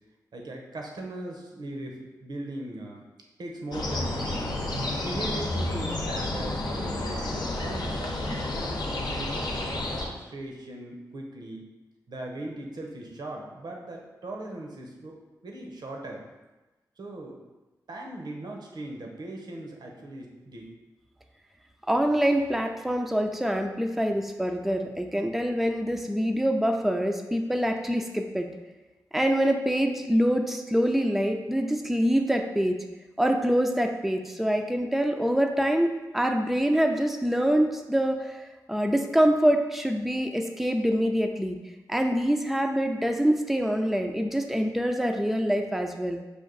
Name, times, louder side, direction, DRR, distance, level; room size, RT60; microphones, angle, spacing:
voice 1, 0.3-3.0 3.4-4.5 5.0-9.5 9.9-11.7 12.1-15.2 15.4-16.2 17.0-17.4 17.9-20.7, right 1 dB, 70° right, 1 dB, 0.9 m, -39 dB
sound 1, 3.7-10.1, left 1 dB, 65° left, 0.8 m, -30 dB
voice 2, 21.9-28.5 29.1-32.8 33.2-38.4 38.7-41.6 41.9-46.2, equal, 5° right, 3 dB, 0.5 m, -25 dB
5.2 x 2.5 x 3.9 m, 1.1 s
cardioid pair, 45°, 8 cm